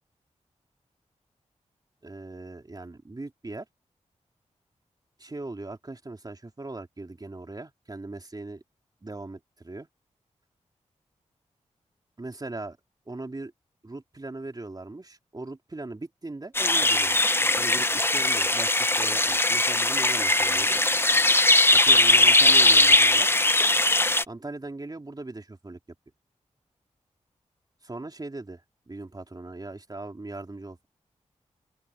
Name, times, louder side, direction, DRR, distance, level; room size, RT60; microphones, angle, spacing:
voice 1, 2.0-3.6 5.2-8.6 9.0-9.9 12.2-12.8 13.1-13.5 13.8-17.3 17.6-20.8 21.7-23.3 24.3-25.8 27.8-28.6 28.9-30.9, right 2 dB, 30° right, 3.4 m, -39 dB
sound 1, 16.5-24.2, left 2 dB, 20° left, 0.9 m, -20 dB
open air
cardioid pair, 60°, 13 cm